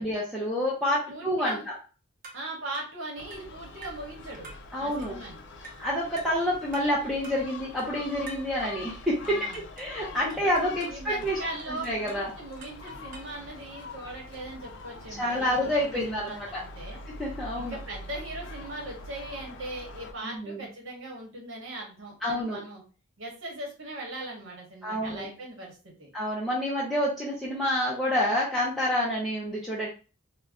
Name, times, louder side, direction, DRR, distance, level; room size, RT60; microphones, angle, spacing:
voice 1, 0.0-1.6 4.7-5.2 5.8-11.4 11.7-12.3 15.1-16.6 17.1-17.8 20.2-20.7 22.2-22.6 24.8-25.3 26.1-29.9, equal, ahead, -6 dB, 0.5 m, -28 dB
voice 2, 1.1-1.6 2.3-4.5 4.8-5.4 9.2-9.6 10.1-10.4 10.9-17.0 17.6-22.8 23.2-26.1, right 2 dB, 70° right, -1 dB, 1.0 m, -39 dB
sound 1, 2.2-2.5 2.7-3.0 3.3-3.5 3.8-4.1 4.4-4.7 5.0-5.2 5.6-5.9 6.2-6.4 6.7-7.0 7.2-7.5 7.8-8.0 8.3-8.5 9.2-10.0 10.3-11.0 11.6-12.3 12.6-13.4, right 2 dB, 40° right, 0.8 m, -47 dB
Gull seagull, 3.2-20.1, left 2 dB, 60° left, 0.5 m, -44 dB
2.6 x 2.2 x 3.4 m, 0.35 s
head